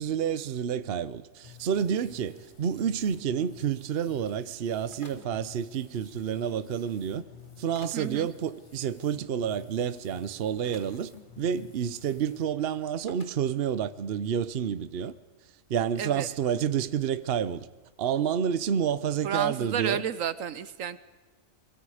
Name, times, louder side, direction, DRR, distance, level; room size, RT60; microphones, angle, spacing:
voice 1, 0.0-7.2 7.6-15.1 15.7-17.7 18.0-20.1, right 8 dB, 55° right, 0.9 m, -29 dB
sound 1, 1.4-12.4, left 6 dB, 55° left, 2.8 m, -52 dB
sound 2, 4.9-5.4 6.8-6.9 7.8-8.1 9.8-9.9 10.6-11.0 11.9-12.0 12.3-12.4 13.1-13.4 14.1-14.2 14.6-15.2 15.8-15.9 16.5-16.8 18.8-19.0, left 3 dB, 40° left, 1.9 m, -52 dB
voice 2, 7.9-8.3 16.0-16.3 19.2-21.0, right 8 dB, 80° right, 1.3 m, -31 dB
25.5 x 22.5 x 5.0 m
omnidirectional pair, 1.4 m